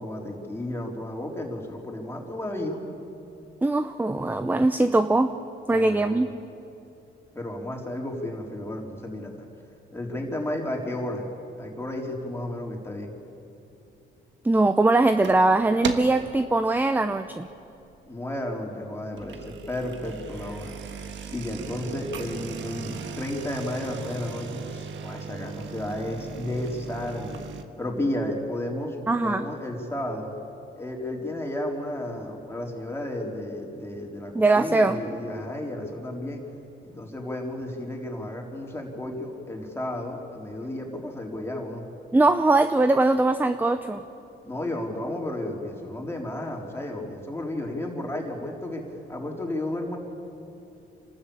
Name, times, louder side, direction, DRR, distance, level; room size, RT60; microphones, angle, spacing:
voice 1, 0.0-2.8 5.7-6.3 7.3-9.5 9.9-11.3 11.6-13.1 18.1-20.7 21.3-27.4 27.8-30.3 30.8-36.4 36.8-41.8 44.4-48.8 49.1-50.0, left 1 dB, 10° left, -1 dB, 4.1 m, -33 dB
voice 2, 3.6-5.3 5.7-6.3 14.4-17.5 29.1-29.4 34.3-35.0 42.1-44.0, right 2 dB, 10° right, 10 dB, 0.7 m, -21 dB
sound 1, 15.0-15.5 15.8-16.3 16.7-17.0 17.6-17.7 17.9-18.0 19.0-27.6, right 6 dB, 70° right, 1.5 m, -37 dB
27.0 x 13.0 x 8.8 m, 2.8 s
cardioid pair, 90°, 20 cm